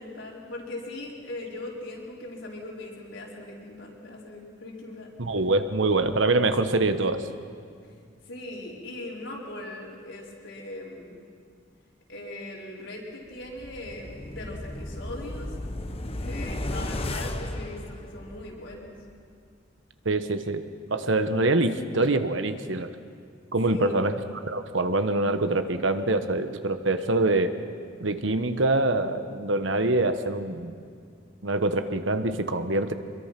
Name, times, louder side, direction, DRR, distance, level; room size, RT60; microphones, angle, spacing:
voice 1, 0.0-5.1 8.2-11.2 12.1-15.5 16.2-18.9 23.7-24.0, left 1 dB, 75° left, -3 dB, 5.0 m, -39 dB
voice 2, 5.2-7.3 20.0-20.6 20.9-22.9 23.5-24.2 24.4-27.5 28.0-30.7 31.4-32.9, right 2 dB, 75° right, 9 dB, 1.2 m, -25 dB
sound 1, 13.4-18.6 19.0-19.1, left 1 dB, 30° left, 1.2 m, -34 dB
25.0 x 22.0 x 6.0 m, 2.2 s
head